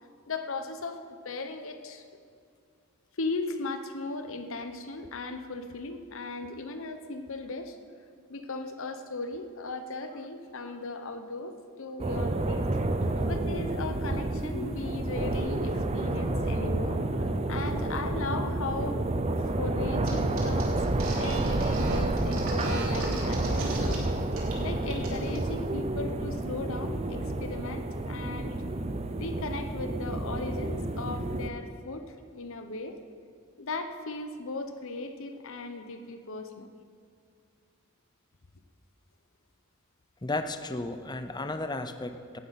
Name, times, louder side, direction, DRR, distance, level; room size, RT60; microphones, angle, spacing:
voice 1, 0.3-2.2 3.1-7.8 8.3-12.7 13.2-19.0 19.6-20.8 21.2-24.0 24.6-28.6 29.2-32.0 32.3-33.0 33.6-36.7, left 3 dB, 65° left, 8 dB, 1.0 m, -37 dB
wind MS, 12.0-31.5, right 2 dB, 30° right, 0.7 m, -30 dB
sound 1, 20.0-20.1 20.4-23.9 24.3-24.6 24.9-25.4, right 2 dB, 70° right, 3.2 m, -38 dB
voice 2, 40.2-42.4, left 2 dB, 20° left, 8 dB, 0.6 m, -34 dB
17.5 x 12.0 x 4.2 m, 2.2 s
head